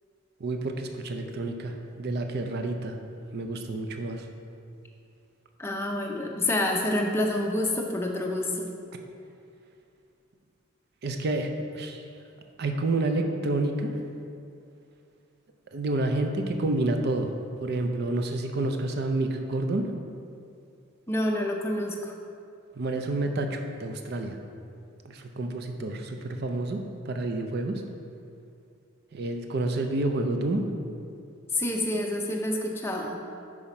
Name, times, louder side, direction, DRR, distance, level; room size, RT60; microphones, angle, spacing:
voice 1, 0.4-3.0 3.3-4.3 11.0-12.0 12.6-13.9 15.7-17.3 17.6-19.9 22.8-24.4 25.0-27.8 29.1-30.6, right 2 dB, 50° right, 5 dB, 0.5 m, -29 dB
voice 2, 5.6-8.7 21.1-22.1 31.5-33.2, left 1 dB, 10° left, 0 dB, 0.5 m, -28 dB
5.6 x 4.9 x 4.3 m, 2.5 s
head